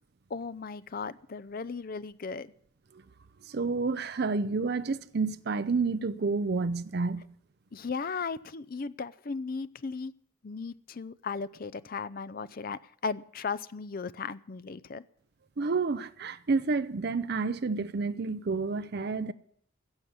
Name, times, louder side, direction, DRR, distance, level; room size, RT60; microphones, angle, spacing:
voice 1, 0.3-2.5 7.7-10.1 10.4-15.0, left 5 dB, 40° left, 0.5 m, -36 dB
voice 2, 3.4-7.2 15.6-19.3, right 4 dB, 50° right, 0.5 m, -29 dB
15.5 x 7.1 x 9.4 m
head